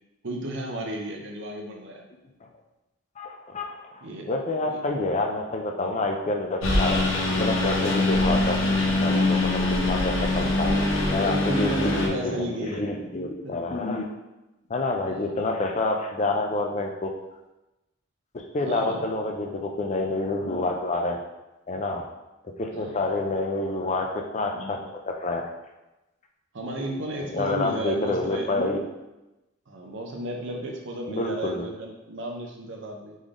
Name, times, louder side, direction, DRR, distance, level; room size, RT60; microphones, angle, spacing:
voice 1, 0.2-2.0 4.0-4.3 4.6-4.8 11.0-12.8 13.4-13.5 15.1-15.3 18.6-19.0 22.7-23.0 26.5-28.5 29.7-33.2, right 1 dB, 65° right, 1 dB, 0.7 m, -33 dB
voice 2, 3.2-7.1 7.4-8.6 9.0-10.7 11.1-14.1 14.7-17.1 18.3-21.2 21.7-22.0 22.6-25.4 27.3-28.9 31.1-31.6, left 2 dB, 35° left, 2 dB, 0.5 m, -28 dB
Engine, 6.6-12.1, left 2 dB, 75° left, 0.9 m, -23 dB
4.0 x 3.4 x 3.7 m, 0.99 s
head